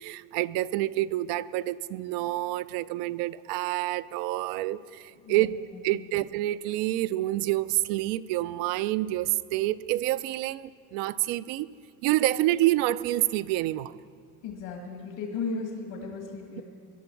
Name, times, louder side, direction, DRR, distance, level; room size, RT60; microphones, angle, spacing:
voice 1, 0.0-5.6 5.8-11.7 12.0-14.0, right 16 dB, 75° right, 0.5 m, -28 dB
voice 2, 5.2-5.6 5.9-6.1 14.4-16.6, left 4 dB, 70° left, 1.9 m, -35 dB
18.5 x 11.5 x 4.6 m
supercardioid pair, 115°, 41 cm